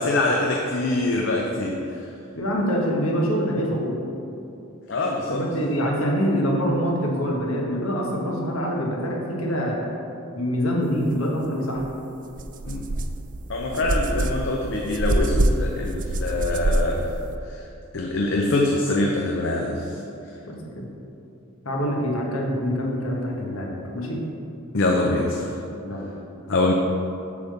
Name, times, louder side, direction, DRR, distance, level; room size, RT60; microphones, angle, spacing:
voice 1, 0.0-2.0 4.9-5.4 12.6-12.9 13.5-17.1 17.5-17.7 17.9-19.9 24.7-25.6 26.5-26.7, left 2 dB, 60° left, -1 dB, 0.6 m, -24 dB
voice 2, 2.3-4.0 5.3-9.9 10.3-11.8 13.7-13.9 21.6-24.2 25.8-26.1, equal, 90° left, -2 dB, 1.5 m, -25 dB
sound 1, 11.8-11.9 12.3-17.4, right 1 dB, 40° right, 0.4 m, -25 dB
8.4 x 3.6 x 6.7 m, 2.7 s
head